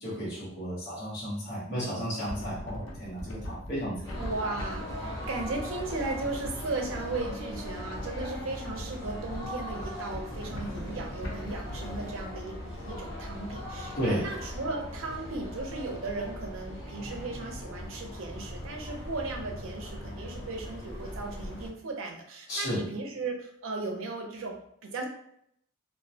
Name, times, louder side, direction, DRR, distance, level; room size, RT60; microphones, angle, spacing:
voice 1, 0.0-4.0 14.0-14.3 22.5-22.8, equal, 55° left, -8 dB, 0.9 m, -33 dB
sound 1, 2.2-12.3, left 1 dB, 85° left, 0.6 m, -41 dB
sound 2, 4.0-21.7, left 1 dB, 15° left, 1.0 m, -40 dB
voice 2, 4.1-25.0, right 3 dB, 80° right, 1 dB, 0.5 m, -36 dB
2.3 x 2.0 x 2.7 m, 0.71 s
head